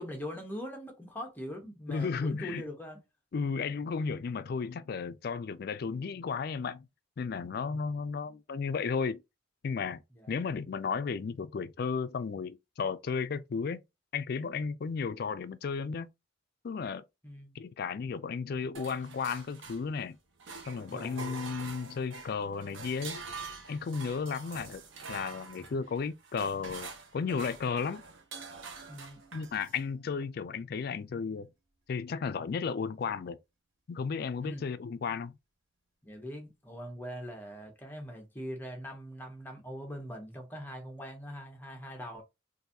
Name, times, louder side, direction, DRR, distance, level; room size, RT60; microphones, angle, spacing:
voice 1, 0.0-3.0 7.6-7.8 10.1-10.4 17.2-17.6 20.9-21.4 28.9-29.2 34.4-34.6 36.0-42.2, equal, 10° left, 0.9 m, -42 dB
voice 2, 1.9-2.6 3.3-6.9 7.2-9.2 9.6-10.0 10.3-13.8 14.1-16.1 16.6-17.0 17.5-20.2 20.7-23.2 23.7-24.8 25.1-28.0 29.3-31.5 31.9-33.4 33.9-35.4, left 5 dB, 50° left, 0.3 m, -34 dB
sound 1, 18.7-20.1 20.4-29.8, right 4 dB, 80° right, 0.9 m, -45 dB
3.9 x 2.6 x 2.7 m
head